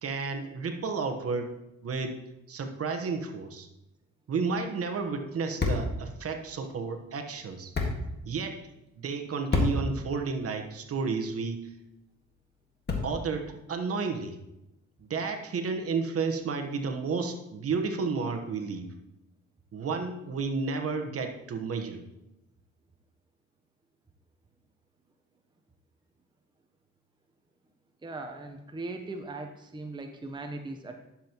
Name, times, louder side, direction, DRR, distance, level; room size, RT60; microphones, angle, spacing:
voice 1, 0.0-1.5 1.8-2.2 2.5-3.7 4.3-7.7 8.2-8.7 9.0-11.7 13.0-14.4 15.0-18.9 19.7-22.0, right 4 dB, 50° right, 5 dB, 1.1 m, -32 dB
sound 1, 4.4-13.4, left 3 dB, 35° left, 1.7 m, -35 dB
voice 2, 28.0-31.0, right 2 dB, 15° right, 4 dB, 0.8 m, -39 dB
11.0 x 7.2 x 3.0 m, 0.90 s
cardioid pair, 90°, 30 cm